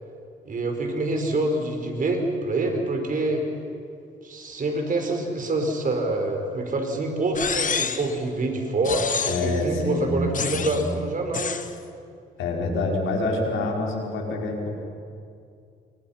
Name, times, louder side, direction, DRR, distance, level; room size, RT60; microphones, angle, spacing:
voice 1, 0.4-3.4 4.2-11.6, right 2 dB, 45° right, 4 dB, 5.0 m, -26 dB
sound 1, 7.4-8.2 8.8-9.6 10.3-10.9 11.3-11.7, left 6 dB, 40° left, 1.5 m, -28 dB
voice 2, 9.2-10.2 10.5-10.9 12.4-14.7, left 2 dB, 85° left, -1 dB, 5.2 m, -26 dB
29.5 x 24.0 x 5.9 m, 2.4 s
cardioid pair, 90°, 20 cm